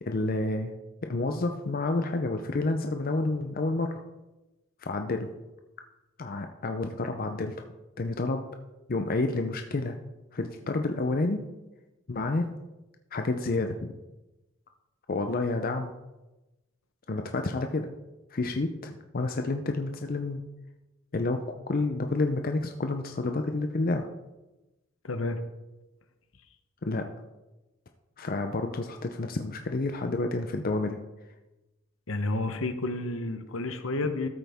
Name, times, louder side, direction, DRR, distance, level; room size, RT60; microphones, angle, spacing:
voice 1, 0.0-0.7 1.0-4.0 4.8-5.3 6.2-7.6 8.0-8.4 8.9-10.0 10.3-11.5 12.1-12.5 13.1-13.9 15.1-15.9 17.1-17.9 18.3-20.4 21.1-24.1 26.8-27.1 28.2-31.0, left 2 dB, 45° left, 5 dB, 0.6 m, -29 dB
voice 2, 25.0-25.4 32.1-34.3, left 2 dB, 70° left, 9 dB, 0.9 m, -30 dB
13.5 x 7.9 x 3.6 m, 1.0 s
head